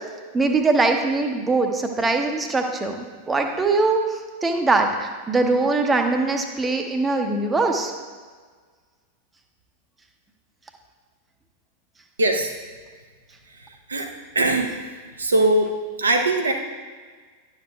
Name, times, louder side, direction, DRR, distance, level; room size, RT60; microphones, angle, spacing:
voice 1, 0.3-7.9, right 3 dB, 15° right, 4 dB, 0.8 m, -22 dB
voice 2, 12.2-12.5 13.9-14.1 14.3-14.7 15.2-16.5, right 2 dB, 75° right, 3 dB, 0.8 m, -20 dB
11.0 x 6.8 x 2.3 m, 1.5 s
figure-of-eight pair, 90°, 0 cm